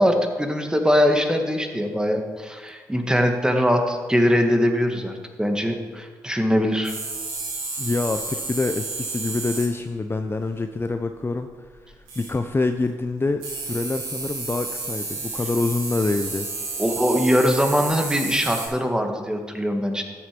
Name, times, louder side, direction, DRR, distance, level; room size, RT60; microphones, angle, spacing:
voice 1, 0.0-6.9 16.8-20.0, equal, 10° right, 4 dB, 2.0 m, -22 dB
sound 1, 6.8-9.7 12.1-12.5 13.4-18.6, right 3 dB, 90° right, 3.2 m, -31 dB
voice 2, 7.8-16.5, left 3 dB, 25° left, 7 dB, 0.7 m, -26 dB
13.0 x 7.8 x 5.3 m, 1.5 s
hypercardioid pair, 40°, 8 cm